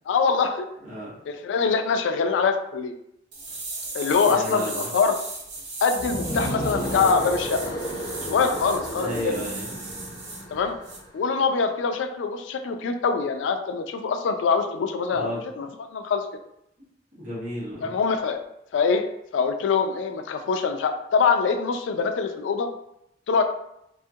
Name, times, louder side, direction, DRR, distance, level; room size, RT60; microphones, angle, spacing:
voice 1, 0.1-0.7 1.3-2.9 3.9-5.2 5.8-7.8 8.2-9.3 10.5-10.8 11.1-15.3 15.6-16.3 17.8-18.4 18.7-19.1 19.3-22.7 23.3-23.4, left 5 dB, 90° left, 7 dB, 0.3 m, -24 dB
voice 2, 0.8-1.1 4.1-4.9 9.0-9.7 15.1-15.4 17.2-17.9, equal, 45° right, -8 dB, 1.2 m, -33 dB
sound 1, 3.3-10.4 10.8-11.0, right 3 dB, 65° right, 0.7 m, -36 dB
sound 2, 5.9-11.0, equal, 20° left, 0.5 m, -32 dB
2.7 x 2.3 x 2.7 m, 0.79 s
head